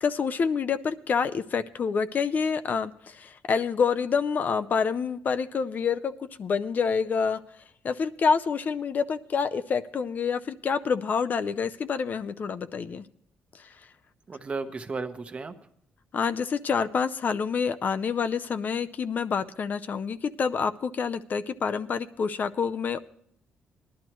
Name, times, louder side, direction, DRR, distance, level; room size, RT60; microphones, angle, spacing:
voice 1, 0.0-7.4 7.8-13.0 13.5-13.7 16.1-23.0, left 6 dB, 45° left, 11 dB, 0.6 m, -27 dB
voice 2, 14.3-15.5, right 4 dB, 30° right, 8 dB, 1.1 m, -34 dB
19.0 x 11.5 x 3.1 m, 0.69 s
cardioid pair, 110°, 4 cm